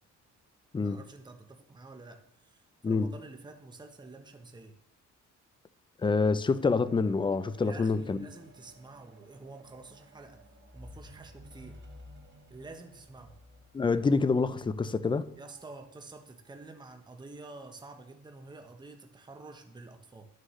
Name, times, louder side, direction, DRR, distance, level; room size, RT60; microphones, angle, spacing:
voice 1, 0.8-4.7 7.6-10.4 10.7-11.8 12.5-13.4 15.4-20.3, right 3 dB, 15° right, 0.9 m, -49 dB
voice 2, 6.0-8.3 13.7-15.2, left 4 dB, 15° left, 0.4 m, -27 dB
sound 1, 6.1-15.6 16.4-16.5, equal, 40° right, 1.2 m, -55 dB
11.0 x 6.4 x 3.2 m
cardioid pair, 90°, 30 cm